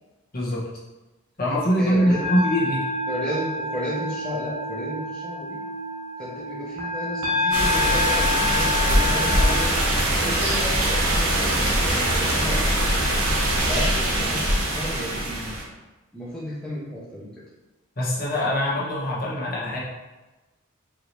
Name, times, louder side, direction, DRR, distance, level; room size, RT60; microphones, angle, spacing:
voice 1, 0.3-0.6 1.4-2.8 18.0-19.8, equal, 45° left, -6 dB, 1.0 m, -23 dB
voice 2, 1.8-2.2 3.1-5.6 6.2-9.7 10.2-12.9 13.6-15.6 16.1-17.3, equal, 5° left, -8 dB, 0.7 m, -33 dB
sound 1, 1.8-9.7, left 2 dB, 65° right, 1.1 m, -28 dB
sound 2, 7.5-15.6, right 1 dB, 85° right, 1.0 m, -22 dB
4.8 x 2.7 x 3.0 m, 1.1 s
head